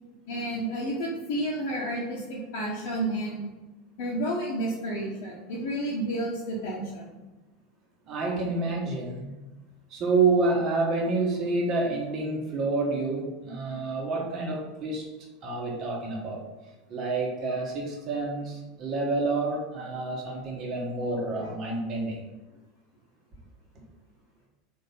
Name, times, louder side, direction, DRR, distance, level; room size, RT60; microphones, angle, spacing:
voice 1, 0.3-3.5 4.0-7.0, right 1 dB, 55° left, -5 dB, 1.2 m, -31 dB
voice 2, 8.1-9.4 9.9-15.1 15.4-16.4 16.9-22.2, right 3 dB, 40° right, -1 dB, 1.7 m, -28 dB
4.5 x 4.4 x 5.5 m, 1.1 s
figure-of-eight pair, 75°, 0 cm